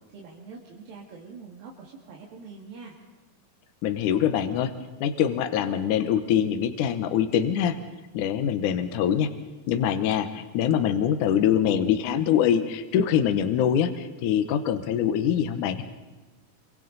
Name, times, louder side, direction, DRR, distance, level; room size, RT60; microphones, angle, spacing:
voice 1, 0.1-3.0, right 4 dB, 85° right, -3 dB, 4.0 m, -44 dB
voice 2, 3.8-4.7 5.0-7.8 8.1-9.3 9.7-15.8, left 9 dB, 70° left, 9 dB, 2.3 m, -24 dB
27.0 x 25.0 x 4.0 m, 1.2 s
omnidirectional pair, 4.1 m